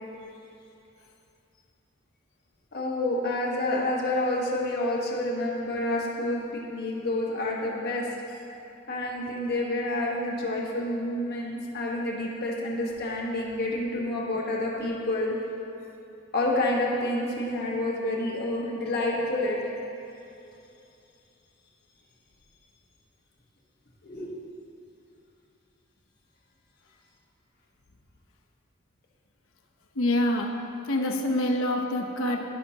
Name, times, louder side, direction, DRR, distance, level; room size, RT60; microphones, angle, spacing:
voice 1, 2.7-8.1 8.9-15.3 16.3-19.7 24.0-24.3, left 1 dB, 55° left, -3 dB, 1.4 m, -28 dB
voice 2, 29.9-30.5 30.9-32.4, left 1 dB, 85° left, 1 dB, 0.8 m, -26 dB
16.0 x 5.7 x 2.9 m, 2.7 s
head